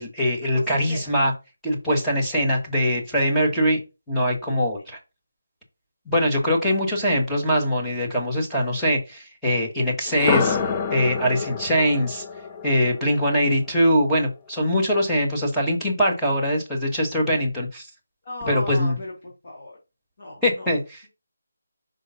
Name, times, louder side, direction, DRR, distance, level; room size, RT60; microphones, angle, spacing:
voice 1, 0.0-1.3 1.6-3.8 4.1-5.0 6.1-10.6 10.9-12.2 12.6-17.9 18.5-18.9 20.4-21.0, equal, ahead, -6 dB, 1.3 m, -22 dB
voice 2, 0.5-1.1 18.2-19.8 20.2-20.7, left 1 dB, 40° left, -2 dB, 2.1 m, -36 dB
sound 1, 10.1-14.0, left 6 dB, 20° left, 0.5 m, -28 dB
5.3 x 3.3 x 5.6 m, 0.27 s
figure-of-eight pair, 170°, 0 cm